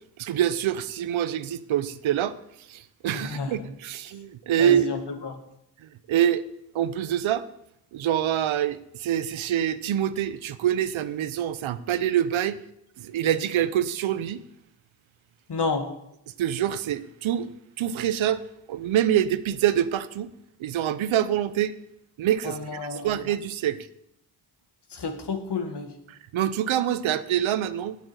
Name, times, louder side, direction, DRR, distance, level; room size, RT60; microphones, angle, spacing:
voice 1, 0.2-2.4 2.7-4.9 5.8-6.4 6.7-7.4 7.9-12.6 13.0-14.4 16.4-17.5 17.8-18.4 18.7-20.3 20.6-21.7 22.2-23.9 26.1-28.0, right 10 dB, 85° right, 14 dB, 0.8 m, -25 dB
voice 2, 3.1-3.7 4.6-5.4 15.5-15.9 22.4-23.2 24.9-25.9, left 4 dB, 60° left, 5 dB, 2.1 m, -30 dB
8.6 x 8.1 x 8.0 m, 0.79 s
cardioid pair, 50°, 46 cm